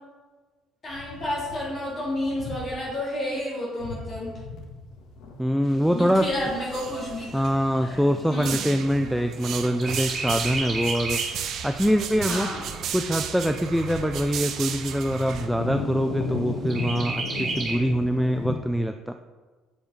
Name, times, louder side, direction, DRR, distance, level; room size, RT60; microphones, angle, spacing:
voice 1, 0.8-4.3 5.9-7.4 7.8-8.7 12.3-12.7, left 1 dB, 25° left, -5 dB, 3.2 m, -31 dB
sound 1, 0.9-2.9 3.3-3.4 3.8-18.6, left 4 dB, 65° left, 1.4 m, -38 dB
voice 2, 5.4-6.3 7.3-11.2 11.6-12.5 12.9-19.1, equal, ahead, 6 dB, 0.3 m, -24 dB
Chirp tweet, 5.6-9.4 9.8-11.4 11.9-12.0 12.3-13.3 13.9-14.0 14.4-14.5 14.9-15.4 16.7-17.8, right 3 dB, 25° right, 3.1 m, -33 dB
sound 2, 5.9-6.3 6.5-7.5 8.2-15.5, right 8 dB, 50° right, 0.9 m, -34 dB
8.6 x 6.8 x 5.1 m, 1.3 s
cardioid pair, 170°, 0 cm